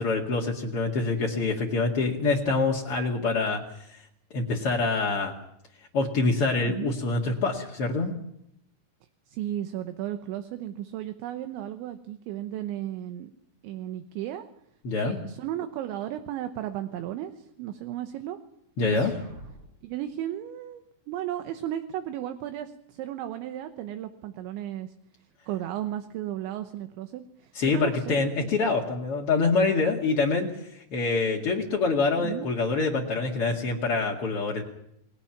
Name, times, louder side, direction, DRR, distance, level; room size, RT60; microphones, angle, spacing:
voice 1, 0.0-4.0 4.3-5.3 5.9-8.1 14.8-15.2 18.8-19.1 27.5-34.6, left 3 dB, 45° left, -1 dB, 1.8 m, -26 dB
voice 2, 9.3-13.3 13.6-14.5 15.0-18.4 18.8-19.1 19.8-24.9 25.5-28.5 32.2-32.5, right 12 dB, 75° right, 8 dB, 3.1 m, -34 dB
sound 1, 18.9-19.9, equal, 35° right, 7.2 m, -45 dB
29.0 x 20.0 x 6.0 m, 0.77 s
omnidirectional pair, 5.8 m